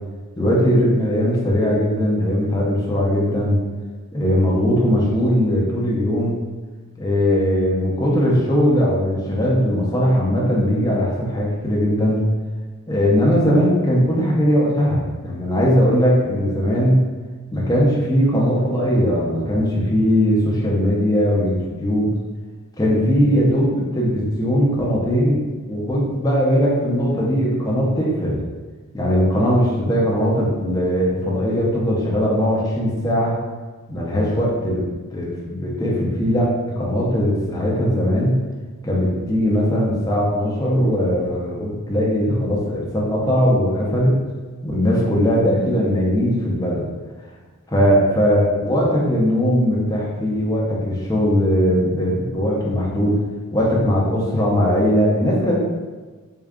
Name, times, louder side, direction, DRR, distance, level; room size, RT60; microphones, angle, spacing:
voice 1, 0.4-3.6 4.1-6.4 7.0-12.2 12.9-17.0 17.5-22.1 22.8-25.4 25.7-28.4 28.9-33.4 33.9-34.8 35.1-38.3 38.8-44.1 44.6-46.9 47.7-53.1 53.5-55.6, equal, 15° left, -4 dB, 0.6 m, -19 dB
3.7 x 2.3 x 3.6 m, 1.4 s
head